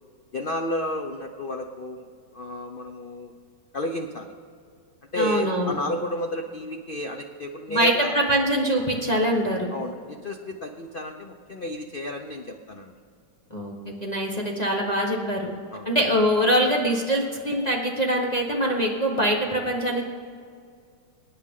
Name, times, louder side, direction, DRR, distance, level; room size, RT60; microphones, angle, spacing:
voice 1, 0.3-2.1 2.3-3.3 3.7-4.3 5.1-8.2 9.7-12.9 15.7-15.9, left 1 dB, 70° left, 4 dB, 0.5 m, -32 dB
voice 2, 5.1-5.7 7.7-9.7 13.5-15.5 15.8-20.1, equal, 25° left, -2 dB, 1.2 m, -23 dB
24.5 x 9.7 x 3.7 m, 2.2 s
omnidirectional pair, 2.1 m